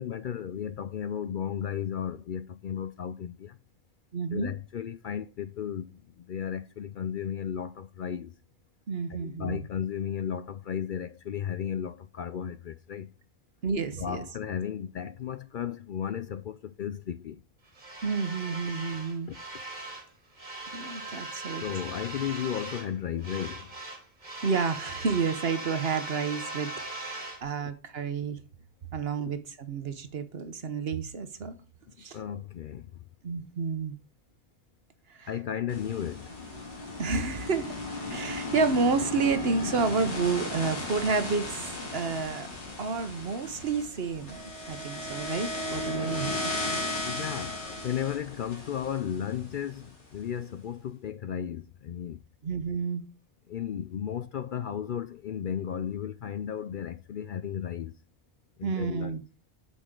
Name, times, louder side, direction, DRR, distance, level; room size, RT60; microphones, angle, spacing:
voice 1, 0.0-3.6 4.3-8.3 9.1-13.1 14.0-17.4 19.3-19.4 21.6-23.7 27.6-27.7 32.1-32.9 35.3-36.3 47.0-52.2 53.5-57.9 58.6-59.2, left 9 dB, 60° left, 0.6 m, -34 dB
voice 2, 4.1-4.5 8.9-9.6 13.6-14.2 18.0-19.3 20.7-21.6 24.4-28.4 28.9-31.5 32.0-32.2 33.2-33.9 35.1-35.3 37.0-37.7 38.1-42.5 42.8-46.5 52.4-53.0 58.6-59.2, right 4 dB, 60° right, 1.2 m, -30 dB
sound 1, 17.7-20.1 20.3-22.9 23.2-27.4, right 2 dB, 40° right, 1.8 m, -39 dB
sound 2, 35.7-49.9, left 2 dB, 80° left, 3.0 m, -36 dB
8.1 x 6.3 x 3.7 m
omnidirectional pair, 1.2 m